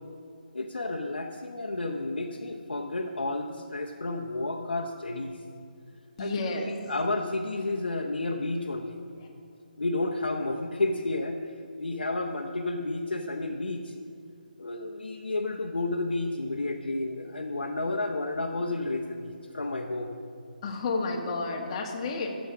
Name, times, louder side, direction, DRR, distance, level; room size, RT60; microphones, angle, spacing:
voice 1, 0.5-5.4 6.2-9.0 9.8-11.4 11.8-13.9 14.6-20.1, left 2 dB, 85° left, 1 dB, 0.9 m, -31 dB
voice 2, 6.2-6.7 9.2-9.3 20.6-22.3, left 3 dB, 35° left, 1 dB, 1.7 m, -31 dB
16.0 x 7.3 x 5.0 m, 2.4 s
figure-of-eight pair, 155°, 5 cm